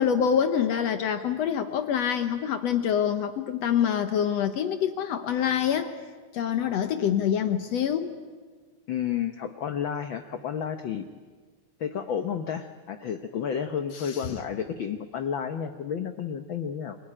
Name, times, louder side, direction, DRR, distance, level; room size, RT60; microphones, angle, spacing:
voice 1, 0.0-5.9 6.3-8.2 13.9-14.3, left 8 dB, 65° left, 8 dB, 1.9 m, -26 dB
voice 2, 8.9-11.0 11.8-17.0, left 8 dB, 80° left, 8 dB, 1.0 m, -31 dB
27.5 x 19.5 x 10.0 m, 1.5 s
omnidirectional pair, 3.5 m